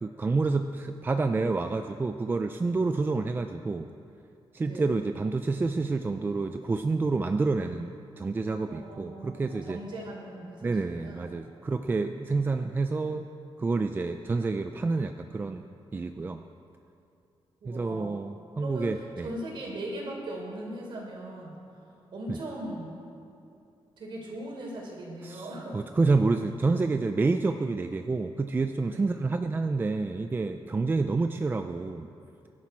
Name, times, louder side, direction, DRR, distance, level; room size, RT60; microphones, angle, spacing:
voice 1, 0.0-3.9 4.5-9.8 10.6-13.3 13.6-15.7 15.9-16.4 17.7-19.3 25.2-25.5 25.7-32.1, right 3 dB, 20° right, 7 dB, 0.4 m, -28 dB
voice 2, 8.7-11.2 17.6-18.2 18.6-22.9 24.0-25.8 28.9-29.1, right 1 dB, 60° right, -1 dB, 3.8 m, -39 dB
22.5 x 11.5 x 4.5 m, 2.6 s
wide cardioid pair, 175°, 10 cm